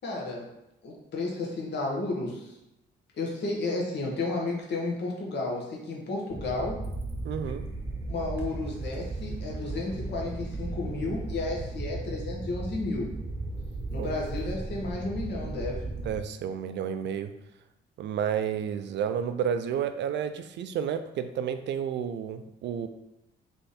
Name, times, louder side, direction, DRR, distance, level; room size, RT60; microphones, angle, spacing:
voice 1, 0.0-0.5 0.8-2.6 3.1-6.8 8.1-13.1 13.9-15.8, left 2 dB, 60° left, -2 dB, 1.2 m, -32 dB
sound 1, 6.3-16.2, right 2 dB, 10° right, 0.9 m, -36 dB
voice 2, 7.2-7.7 14.0-14.1 16.0-17.3 18.0-22.9, right 8 dB, 65° right, 9 dB, 0.4 m, -31 dB
3.4 x 3.4 x 4.1 m, 0.90 s
cardioid pair, 90°, 20 cm